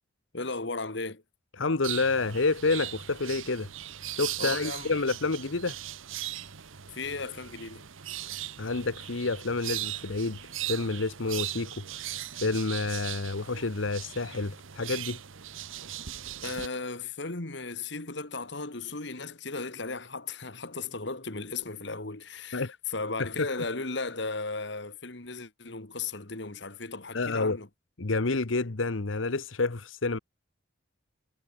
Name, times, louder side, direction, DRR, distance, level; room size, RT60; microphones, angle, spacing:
voice 1, 0.3-1.2 4.4-4.9 6.9-7.8 16.4-27.7, left 3 dB, 60° left, 1.9 m, -36 dB
voice 2, 1.6-3.7 4.1-5.8 8.6-10.4 10.7-12.1 12.4-15.2 22.5-22.8 27.1-27.6 28.0-30.2, left 3 dB, 75° left, 1.1 m, -29 dB
sound 1, 1.8-16.7, right 12 dB, 80° right, 1.1 m, -39 dB
head